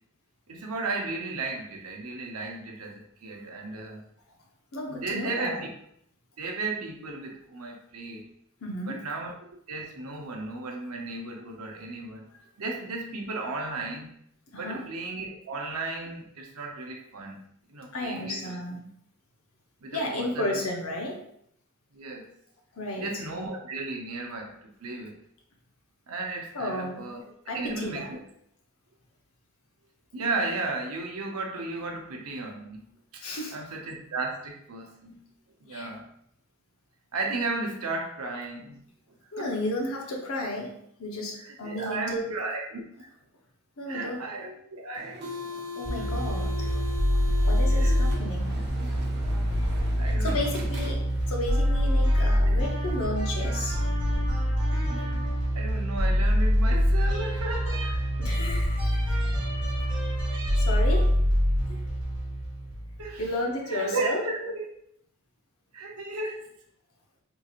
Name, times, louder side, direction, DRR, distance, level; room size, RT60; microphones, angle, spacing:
voice 1, 0.5-4.0 4.9-5.7 6.4-8.2 8.8-9.3 9.7-12.3 12.6-14.1 14.6-17.4 17.7-18.6 19.8-20.6 21.9-22.3 23.0-25.2 26.1-27.2 27.5-28.2 30.1-33.2 33.5-35.2 35.6-36.1 37.1-38.8 39.4-39.5 41.4-43.1 43.9-45.3 47.7-48.0 50.0-50.7 52.5-52.6 54.9-58.0 63.0-63.2 63.6-64.7 65.7-66.5, right 3 dB, 85° right, 1 dB, 0.7 m, -34 dB
voice 2, 4.7-5.6 8.6-9.0 14.5-14.8 17.9-18.8 19.9-21.2 22.7-23.1 26.5-27.1 27.5-28.2 33.2-33.6 35.7-35.9 39.3-40.7 41.0-42.3 43.8-44.2 45.8-46.7 47.4-48.6 49.6-49.7 50.0-51.0 51.3-53.8 58.2-59.2 60.6-61.1 61.7-61.8 63.2-64.2, left 1 dB, 70° left, 0 dB, 0.8 m, -33 dB
sound 1, 45.0-51.4, left 3 dB, 50° right, 0.6 m, -39 dB
sound 2, 45.9-63.2, equal, 10° right, 1.2 m, -25 dB
3.8 x 2.9 x 2.4 m, 0.70 s
head